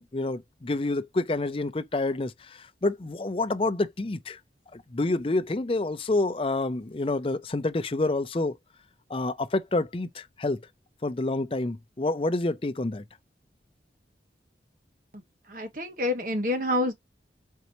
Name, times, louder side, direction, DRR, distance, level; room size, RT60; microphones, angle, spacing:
voice 1, 0.0-4.4 4.7-8.6 9.1-10.6 11.0-13.0, left 2 dB, 30° left, 0.5 m, -28 dB
voice 2, 15.5-16.9, left 1 dB, 50° right, 1.4 m, -28 dB
4.5 x 4.1 x 2.8 m
head